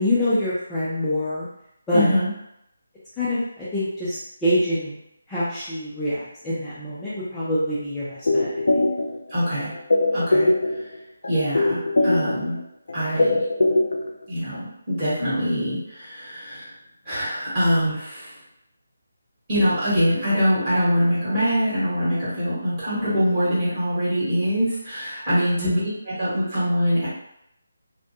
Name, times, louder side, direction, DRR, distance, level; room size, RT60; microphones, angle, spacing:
voice 1, 0.0-1.5 1.9-2.1 3.2-5.0 5.3-8.6 22.9-23.1 25.6-25.9, left 1 dB, 10° left, -12 dB, 0.5 m, -25 dB
voice 2, 1.9-2.3 9.3-9.7 10.1-10.5 10.8-10.9 11.3-12.6 12.9-13.4 14.3-16.7 17.0-18.3 19.5-25.9 26.2-27.1, equal, 25° right, -12 dB, 1.2 m, -23 dB
sound 1, 8.3-9.3 9.6-11.0 11.2-12.6 12.9-14.2 14.5-14.6, left 2 dB, 70° left, 0.4 m, -21 dB
2.2 x 2.1 x 2.7 m, 0.78 s
figure-of-eight pair, 160°, 0 cm